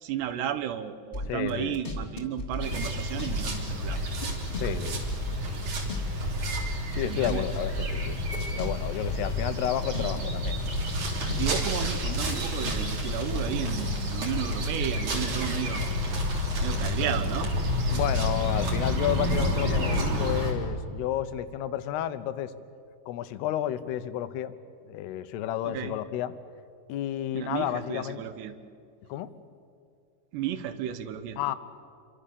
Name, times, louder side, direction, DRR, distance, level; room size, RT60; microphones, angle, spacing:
voice 1, 0.0-4.0 6.9-7.5 9.9-10.3 11.4-15.9 16.6-17.5 25.6-26.0 27.3-28.6 30.3-31.4, right 10 dB, 80° right, 11 dB, 3.2 m, -33 dB
sound 1, 1.1-3.4 3.7-6.3 6.5-10.2 10.4-11.6 12.0-13.5, left 2 dB, 15° left, 2.4 m, -35 dB
voice 2, 1.3-1.8 4.6-5.0 6.9-8.2 8.5-10.6 17.9-22.5 23.1-24.5 24.8-26.3 26.9-28.2 29.1-29.3 31.4-31.6, left 11 dB, 75° left, 12 dB, 2.9 m, -31 dB
sound 2, 2.6-20.5, equal, 45° right, 4.4 m, -29 dB
27.5 x 25.0 x 6.9 m, 2.5 s
omnidirectional pair, 4.9 m